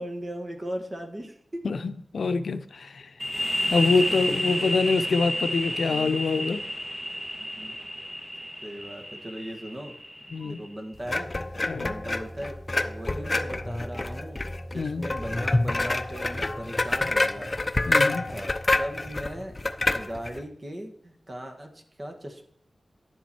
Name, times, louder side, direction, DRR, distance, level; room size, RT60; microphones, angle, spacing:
voice 1, 0.0-1.7 3.6-4.8 5.9-6.2 7.4-7.7 8.3-9.9 10.4-11.3 11.8-12.6 12.8-14.4 14.7-17.5 18.3-18.5 18.8-22.4, equal, 35° right, 3 dB, 1.6 m, -38 dB
voice 2, 1.6-3.1 3.7-6.6 10.3-10.6 11.7-11.9 14.7-15.0 17.8-18.3, left 4 dB, 85° left, 10 dB, 0.6 m, -25 dB
sound 1, 3.2-10.7, left 1 dB, 10° right, 1.6 m, -31 dB
sound 2, 11.1-20.4, left 2 dB, 35° left, 0.6 m, -27 dB
10.5 x 7.3 x 4.4 m, 0.69 s
wide cardioid pair, 80°, 0 cm